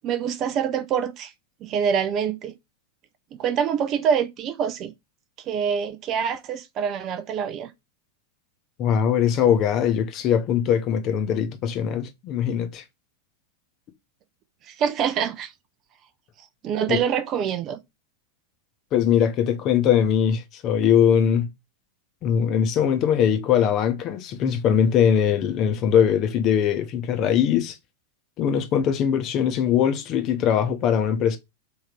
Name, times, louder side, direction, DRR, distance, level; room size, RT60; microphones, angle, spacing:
voice 1, 0.0-1.3 1.6-2.5 3.3-4.9 5.5-7.7 14.7-15.5 16.6-17.8, right 7 dB, 35° right, 0.5 m, -25 dB
voice 2, 8.8-12.8 16.9-17.0 18.9-21.5 22.2-27.8 28.4-31.4, left 8 dB, 35° left, 0.8 m, -21 dB
3.6 x 2.7 x 4.5 m
figure-of-eight pair, 90°, 0 cm